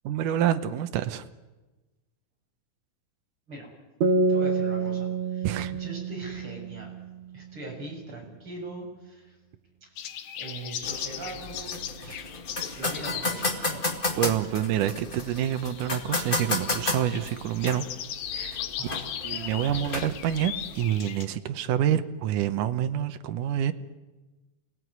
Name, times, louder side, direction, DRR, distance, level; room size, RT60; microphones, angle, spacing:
voice 1, 0.0-1.2 5.4-5.7 14.2-17.9 18.3-18.6 19.2-23.7, right 10 dB, 80° right, 9 dB, 2.5 m, -27 dB
sound 1, 4.0-7.5, right 3 dB, 65° right, 2.3 m, -27 dB
voice 2, 4.3-6.9 7.3-9.4 10.4-12.4 12.8-13.9 18.8-19.0 19.6-19.8, right 2 dB, 40° right, 0 dB, 7.6 m, -41 dB
sound 2, 10.0-21.3, left 10 dB, 75° left, 2.6 m, -38 dB
sound 3, 10.8-20.8, left 2 dB, 20° left, 1.6 m, -33 dB
27.0 x 19.0 x 9.6 m, 1.2 s
omnidirectional pair, 3.7 m